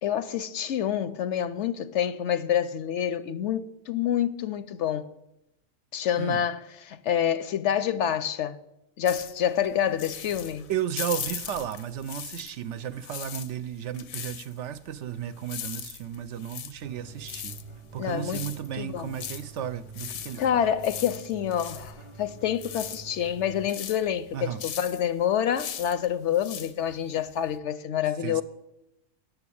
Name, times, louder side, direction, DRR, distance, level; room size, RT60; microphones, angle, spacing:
voice 1, 0.0-5.1 5.9-8.6 9.0-10.7 18.0-18.5 18.8-19.1 20.4-28.4, left 9 dB, 70° left, 0.8 m, -27 dB
sound 1, 9.1-12.7 12.9-27.6, left 9 dB, 90° left, 1.2 m, -40 dB
voice 2, 10.7-17.5 17.9-20.7 24.3-24.6 28.2-28.4, right 10 dB, 70° right, 0.8 m, -34 dB
sound 2, 16.8-23.7, right 4 dB, 25° right, 0.9 m, -47 dB
9.7 x 7.0 x 8.5 m
omnidirectional pair, 1.4 m